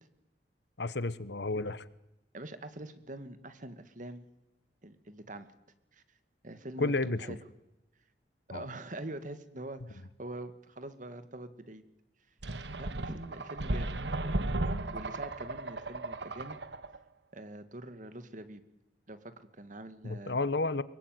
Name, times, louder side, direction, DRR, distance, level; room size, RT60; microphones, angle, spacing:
voice 1, 0.8-1.9 6.8-7.3 8.5-8.7 20.0-20.8, left 3 dB, 75° left, 16 dB, 1.2 m, -31 dB
voice 2, 2.3-4.3 4.8-5.5 5.9-6.0 6.4-6.9 7.2-7.4 8.5-11.8 12.8-16.6 17.3-18.6 19.1-20.4, right 1 dB, 45° right, 10 dB, 2.1 m, -44 dB
sound 1, 12.4-17.0, right 2 dB, 80° right, 1.4 m, -35 dB
24.5 x 22.5 x 9.5 m, 0.90 s
head